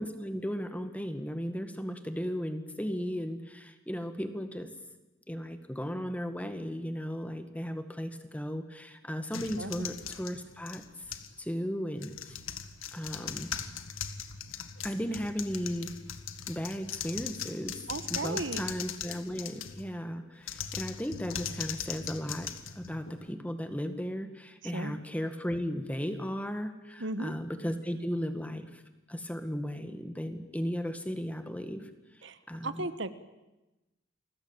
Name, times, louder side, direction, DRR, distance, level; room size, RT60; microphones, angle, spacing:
voice 1, 0.0-4.7 5.3-10.8 11.4-12.4 12.9-13.5 14.8-15.9 16.5-17.8 18.1-28.8 29.1-31.9 32.5-32.9, equal, 5° left, 8 dB, 1.9 m, -35 dB
sound 1, 9.3-11.4 11.9-19.9 20.4-23.3, left 8 dB, 80° left, 1.9 m, -40 dB
voice 2, 17.9-18.6 24.6-25.0 27.0-27.3 32.2-33.1, right 2 dB, 60° right, 12 dB, 1.4 m, -36 dB
29.0 x 20.5 x 8.9 m, 1.0 s
head